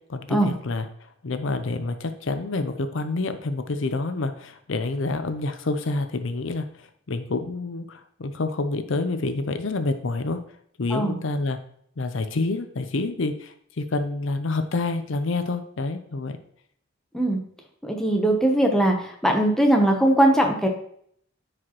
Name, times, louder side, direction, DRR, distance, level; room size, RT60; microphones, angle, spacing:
voice 1, 0.1-0.9 1.2-10.4 10.8-11.6 12.0-16.4, left 3 dB, 70° left, 9 dB, 0.6 m, -28 dB
voice 2, 17.8-19.0 19.2-20.7, right 1 dB, ahead, 1 dB, 0.9 m, -20 dB
9.7 x 4.9 x 3.0 m, 0.65 s
head